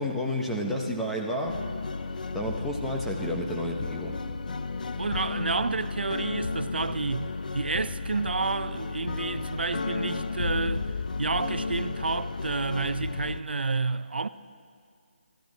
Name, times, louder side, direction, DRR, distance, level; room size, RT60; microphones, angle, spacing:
voice 1, 0.0-1.6 2.3-4.2, equal, 5° left, 0.9 m, -30 dB
sound 1, 1.5-13.4, left 4 dB, 55° left, 0.6 m, -33 dB
voice 2, 5.0-10.9 11.2-14.3, right 4 dB, 80° right, 0.6 m, -30 dB
23.5 x 14.0 x 4.0 m
hypercardioid pair, 170°, 5 cm